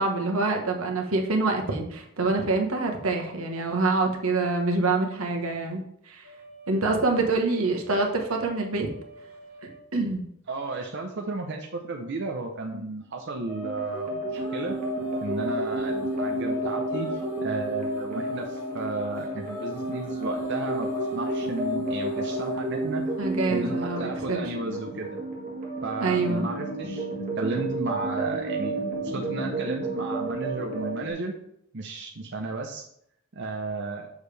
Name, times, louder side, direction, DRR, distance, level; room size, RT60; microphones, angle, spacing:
voice 1, 0.0-6.3 6.7-8.9 9.9-10.2 23.2-24.4 26.0-26.5, right 3 dB, 85° right, 2 dB, 1.3 m, -26 dB
sound 1, 6.2-9.8 13.4-21.6, right 1 dB, 65° left, 2.4 m, -49 dB
voice 2, 10.5-14.8 15.2-23.0 23.5-25.2 25.8-31.3 31.7-32.8 33.3-34.1, right 3 dB, 60° right, 2 dB, 0.7 m, -33 dB
sound 2, 13.5-31.1, right 1 dB, 40° right, 1.8 m, -31 dB
sound 3, 14.0-25.0, left 1 dB, 15° right, 2.0 m, -47 dB
7.2 x 6.4 x 3.3 m, 0.73 s
head